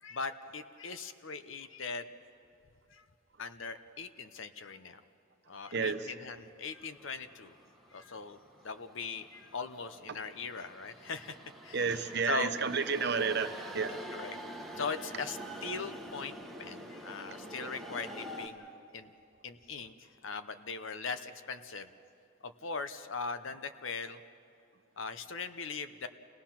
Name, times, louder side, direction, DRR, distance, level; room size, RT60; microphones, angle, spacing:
voice 1, 0.0-2.1 2.9-3.0 3.4-5.0 5.5-7.5 7.9-11.4 11.6-12.5 13.9-14.4 14.8-19.1 19.4-21.9 22.4-24.2 25.0-26.1, left 4 dB, 70° left, 10 dB, 0.9 m, -40 dB
voice 2, 5.7-6.0 11.7-14.0, right 5 dB, 55° right, 8 dB, 1.0 m, -31 dB
sound 1, 6.8-18.5, right 1 dB, ahead, 1.4 m, -47 dB
29.0 x 18.5 x 5.9 m, 2.6 s
head